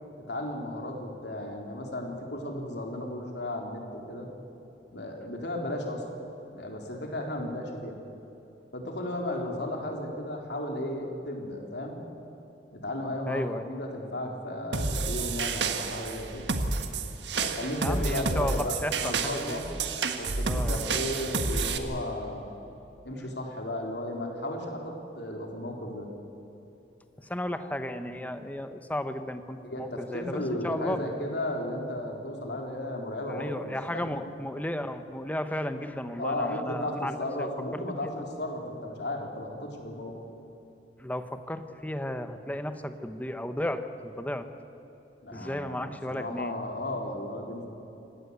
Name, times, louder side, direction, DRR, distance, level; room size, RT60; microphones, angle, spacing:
voice 1, 0.3-4.3 4.9-6.0 6.5-7.9 8.7-12.0 12.7-16.5 17.3-19.6 20.2-22.5 23.0-26.1 29.6-34.2 36.2-40.1 45.2-47.7, left 1 dB, 65° left, 1 dB, 3.7 m, -34 dB
voice 2, 13.3-13.6 17.8-19.6 20.4-20.9 27.2-31.0 33.3-38.1 41.0-44.5 45.3-46.6, left 1 dB, 10° left, 9 dB, 1.0 m, -34 dB
sound 1, 14.7-21.8, right 4 dB, 65° right, 1.6 m, -30 dB
25.5 x 18.0 x 8.2 m, 2.9 s
head